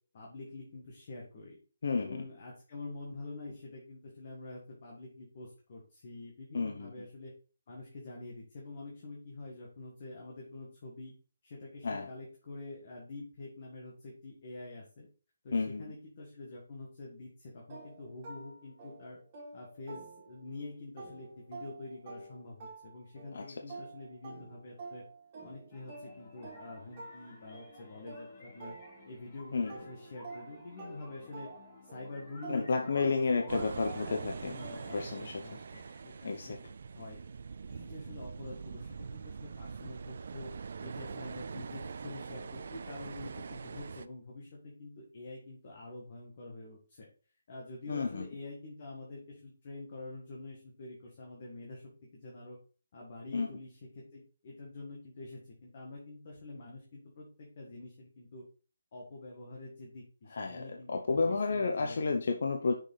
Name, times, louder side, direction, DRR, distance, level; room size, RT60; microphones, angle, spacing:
voice 1, 0.1-1.6 2.0-7.3 7.7-11.1 11.4-15.1 15.4-19.2 19.5-25.0 25.4-28.8 29.0-31.5 31.9-33.3 33.6-33.7 34.4-36.6 36.9-37.2 37.7-40.5 40.8-47.1 47.5-52.6 52.9-58.4 58.9-62.0, left 2 dB, 40° left, -2 dB, 1.9 m, -47 dB
voice 2, 1.8-2.2 6.5-7.1 11.8-12.1 15.5-15.9 23.3-23.4 29.5-29.7 32.5-34.5 34.9-35.4 36.2-36.6 47.9-48.3 53.3-53.5 60.3-62.7, left 4 dB, 60° left, 4 dB, 0.8 m, -31 dB
sound 1, 17.7-20.6 21.0-29.3 29.7-35.1, right 3 dB, 25° right, 2.9 m, -49 dB
sound 2, 25.7-36.3, left 2 dB, 25° left, 1.5 m, -55 dB
sound 3, 33.5-44.1, right 5 dB, 55° right, 0.4 m, -43 dB
6.5 x 4.8 x 4.1 m, 0.39 s
hypercardioid pair, 165°, 0 cm